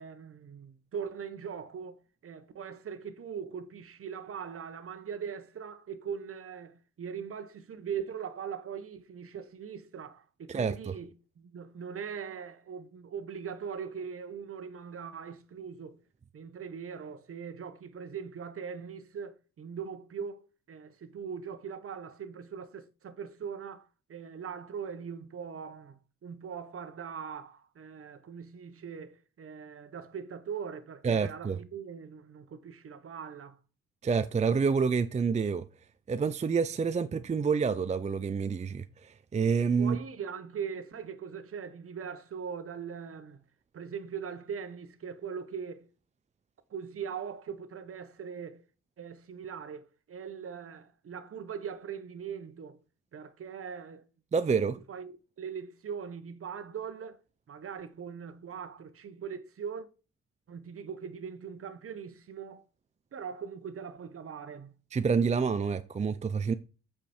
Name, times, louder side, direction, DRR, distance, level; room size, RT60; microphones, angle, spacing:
voice 1, 0.0-11.1 11.4-16.0 16.3-33.6 39.8-43.4 43.7-45.9 46.7-48.6 49.0-52.8 53.1-54.0 54.9-57.2 57.5-59.9 60.5-62.6 63.1-64.7, right 7 dB, 45° right, 1.2 m, -41 dB
voice 2, 10.5-10.9 31.0-31.6 34.0-35.7 36.1-40.0 54.3-54.8 64.9-66.5, right 5 dB, 25° right, 0.5 m, -28 dB
8.2 x 5.1 x 4.4 m
cardioid pair, 90°, 30 cm